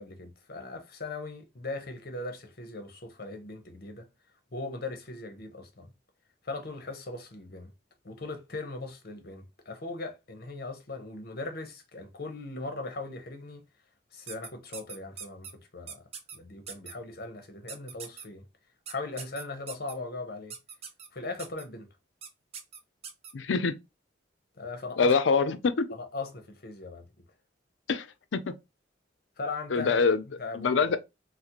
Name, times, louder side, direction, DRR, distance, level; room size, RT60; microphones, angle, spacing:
voice 1, 0.0-4.1 4.5-5.9 6.4-7.7 8.0-13.6 14.1-15.5 15.7-16.0 16.3-18.5 18.9-20.6 21.1-21.9 24.6-25.1 25.9-27.1 29.4-30.0 30.4-30.9, left 3 dB, 50° left, 0.9 m, -39 dB
sound 1, 14.3-15.5 15.9-16.4 16.7-16.9 17.7-18.2 18.9-19.9 20.5-21.1 21.4-21.6 22.2-22.3 22.5-23.3, right 6 dB, 30° right, 0.4 m, -41 dB
voice 2, 23.3-23.7 25.0-25.9 27.9-28.1 28.3-28.5 29.7-30.2 30.5-31.0, left 4 dB, 75° left, 0.5 m, -24 dB
4.0 x 2.1 x 2.9 m
head